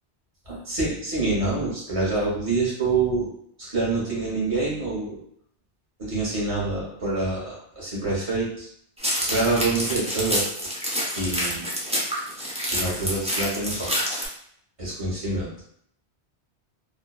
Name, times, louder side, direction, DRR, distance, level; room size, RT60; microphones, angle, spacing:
voice 1, 0.5-3.3 3.6-5.2 6.0-8.7 9.2-10.5 11.2-11.7 12.7-13.9 14.8-15.5, right 3 dB, 35° right, -6 dB, 1.0 m, -26 dB
sound 1, 9.0-14.3, equal, 10° right, 0.3 m, -27 dB
2.6 x 2.2 x 2.3 m, 0.68 s
omnidirectional pair, 1.1 m